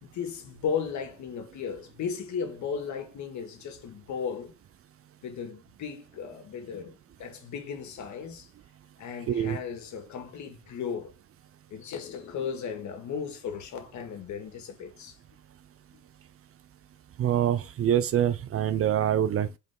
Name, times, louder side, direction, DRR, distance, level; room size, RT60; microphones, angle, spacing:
voice 1, 0.0-4.5 5.2-8.5 9.0-11.1 11.7-15.2 15.9-16.0, left 6 dB, 60° left, 2.0 m, -36 dB
voice 2, 9.3-9.6 17.2-19.6, right 10 dB, 45° right, 0.7 m, -25 dB
5.3 x 4.8 x 3.8 m
cardioid pair, 105°, 32 cm